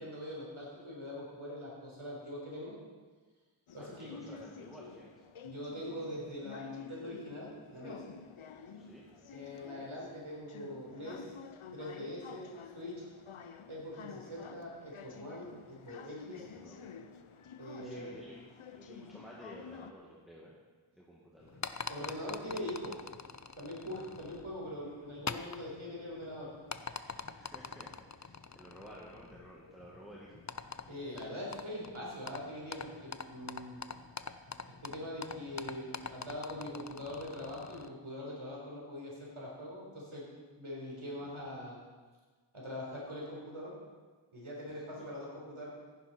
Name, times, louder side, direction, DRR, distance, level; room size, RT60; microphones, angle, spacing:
voice 1, 0.0-2.7 3.7-4.1 5.4-8.0 9.3-11.3 11.7-12.9 13.7-16.5 17.6-18.1 21.9-22.9 23.6-26.5 30.9-33.8 34.8-40.2 40.6-41.8 42.5-43.7 44.3-45.7, left 1 dB, 80° right, -4 dB, 4.4 m, -43 dB
sound 1, 3.7-19.9, left 6 dB, 80° left, 0.7 m, -50 dB
voice 2, 3.8-5.1 8.8-9.1 16.4-16.8 17.8-20.5 21.0-21.5 22.4-22.8 23.9-24.0 27.4-30.4 41.2-41.5, right 1 dB, ahead, -5 dB, 2.0 m, -53 dB
sound 2, 21.4-37.9, left 5 dB, 35° left, 0.6 m, -45 dB
15.0 x 10.5 x 4.5 m, 1.4 s
wide cardioid pair, 40°, 48 cm